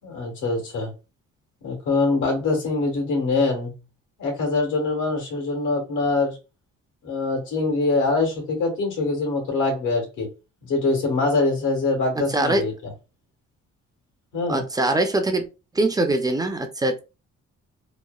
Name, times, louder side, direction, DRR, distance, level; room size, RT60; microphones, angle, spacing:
voice 1, 0.0-0.9 1.6-3.8 4.2-6.4 7.0-10.3 10.6-12.9 14.3-14.6, left 3 dB, 85° left, 2 dB, 1.4 m, -24 dB
voice 2, 12.3-12.6 14.5-15.5 15.7-17.0, right 2 dB, 15° right, 5 dB, 0.5 m, -22 dB
3.0 x 2.1 x 2.2 m, 0.29 s
cardioid pair, 90°, 30 cm